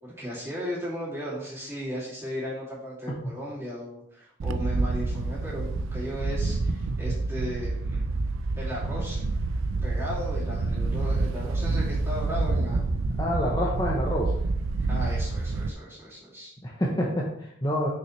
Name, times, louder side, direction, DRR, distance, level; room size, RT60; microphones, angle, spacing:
voice 1, 0.0-8.0 8.6-9.2 9.8-12.8 14.9-16.5, equal, 15° right, -8 dB, 2.5 m, -36 dB
Wind, 4.4-15.7, right 3 dB, 85° right, 0.4 m, -28 dB
voice 2, 13.2-14.3 16.6-17.9, equal, 20° left, -3 dB, 0.8 m, -27 dB
6.2 x 5.7 x 3.2 m, 0.78 s
head